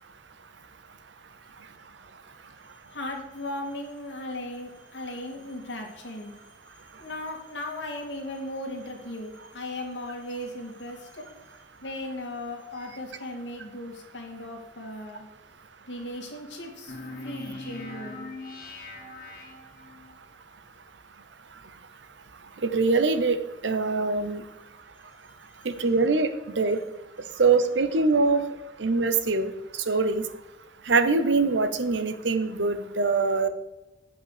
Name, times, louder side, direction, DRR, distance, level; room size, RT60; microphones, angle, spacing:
voice 1, 2.9-6.3 7.0-11.3 11.8-15.2 15.9-18.3, left 1 dB, 80° left, 2 dB, 2.1 m, -37 dB
sound 1, 16.9-20.2, left 2 dB, 55° left, 2.0 m, -41 dB
voice 2, 22.6-23.4 23.6-24.4 25.6-26.8 27.4-28.5 28.8-29.5 29.9-30.2 30.9-33.5, right 4 dB, 80° right, 10 dB, 0.8 m, -23 dB
8.2 x 5.5 x 6.7 m, 1.0 s
head